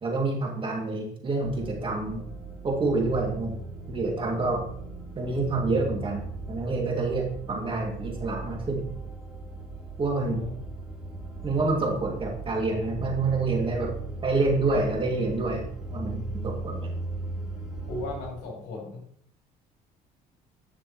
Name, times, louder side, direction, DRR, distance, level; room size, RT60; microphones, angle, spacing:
voice 1, 0.0-2.3 2.6-3.6 3.9-4.7 5.2-8.8 10.0-10.4 11.4-13.9 14.2-16.9, right 3 dB, 30° right, 0 dB, 2.3 m, -27 dB
sound 1, 1.4-18.3, right 2 dB, ahead, 3.4 m, -38 dB
voice 2, 10.1-10.6 17.8-19.0, left 2 dB, 80° left, 0 dB, 3.8 m, -36 dB
10.0 x 6.9 x 3.1 m, 0.66 s
cardioid pair, 110°, 17 cm